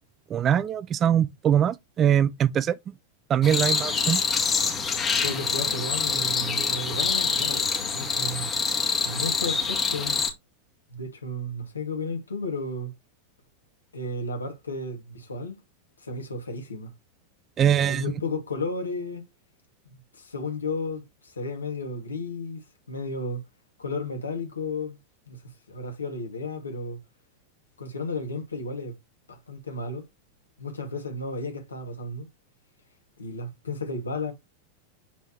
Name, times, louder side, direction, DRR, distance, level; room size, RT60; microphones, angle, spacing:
voice 1, 0.3-2.9 3.3-4.2 17.6-18.1, right 9 dB, 25° right, 0.5 m, -22 dB
sound 1, 3.4-10.3, left 5 dB, 20° left, 2.2 m, -26 dB
voice 2, 5.2-8.5 9.0-10.2 10.9-12.9 13.9-15.6 16.0-16.9 17.8-19.3 20.1-22.6 22.9-23.4 23.8-25.0 25.3-25.4 25.7-27.0 27.8-29.0 29.3-30.0 30.6-32.3 33.2-34.3, left 2 dB, 75° left, 2.4 m, -33 dB
8.1 x 4.5 x 3.2 m
figure-of-eight pair, 90°, 0 cm